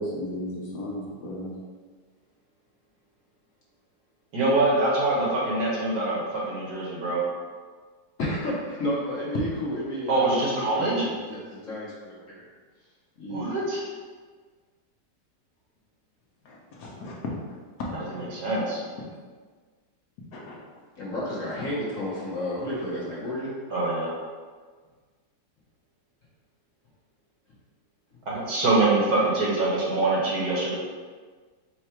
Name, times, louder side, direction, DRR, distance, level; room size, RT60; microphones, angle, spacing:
voice 1, 0.0-1.5 16.4-17.1 17.5-17.6 18.1-18.2 20.3-20.6, equal, 70° left, -3 dB, 1.3 m, -35 dB
voice 2, 4.3-7.2 10.1-11.1 13.3-13.8 17.9-18.8 23.7-24.2 28.3-30.7, right 2 dB, 65° right, -5 dB, 1.6 m, -24 dB
voice 3, 8.2-12.5 13.2-13.5 21.0-23.5 29.9-30.0, left 1 dB, 50° left, -7 dB, 1.3 m, -32 dB
4.6 x 2.4 x 4.4 m, 1.5 s
omnidirectional pair, 1.9 m